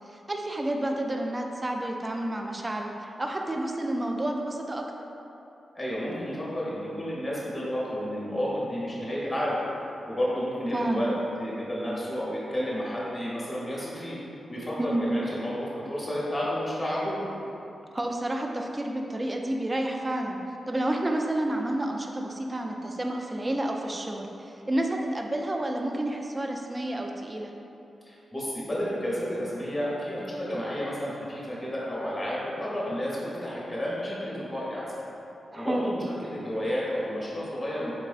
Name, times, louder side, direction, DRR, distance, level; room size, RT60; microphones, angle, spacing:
voice 1, 0.1-5.1 10.7-11.1 14.8-15.0 17.9-20.4 20.7-27.5 35.5-35.9, right 1 dB, 25° right, 2 dB, 0.3 m, -30 dB
voice 2, 5.7-9.6 10.1-11.1 11.4-14.2 14.5-17.3 28.1-35.0 35.5-37.9, equal, 15° left, -7 dB, 0.9 m, -31 dB
3.4 x 3.2 x 2.4 m, 2.9 s
cardioid pair, 60°, 0 cm